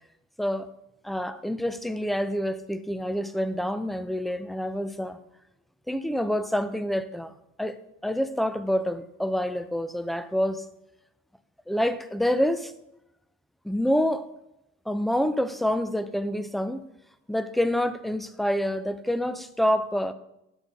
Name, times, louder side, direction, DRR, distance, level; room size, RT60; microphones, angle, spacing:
voice 1, 1.0-5.2 5.9-7.3 7.6-7.7 8.0-10.6 11.7-12.7 13.6-14.3 14.9-16.8 17.3-20.1, equal, ahead, 13 dB, 0.6 m, -27 dB
8.9 x 7.9 x 3.7 m, 0.86 s
hypercardioid pair, 55°, 41 cm